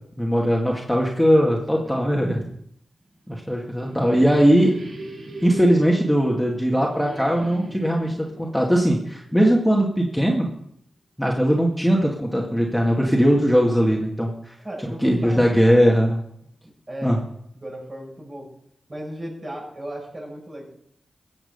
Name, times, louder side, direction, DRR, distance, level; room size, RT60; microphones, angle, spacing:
voice 1, 0.2-2.5 3.3-4.8 5.4-10.5 11.2-14.5 14.8-16.2 17.0-17.2, equal, ahead, -2 dB, 2.2 m, -20 dB
voice 2, 1.5-2.6 3.4-3.6 14.6-15.6 16.4-16.5 16.9-17.2 17.5-18.4 18.9-20.6, right 1 dB, 35° right, -1 dB, 6.8 m, -36 dB
sound 1, 3.2-9.9, right 2 dB, 75° right, 3.0 m, -39 dB
15.5 x 7.7 x 5.5 m, 0.71 s
cardioid pair, 45°, 0 cm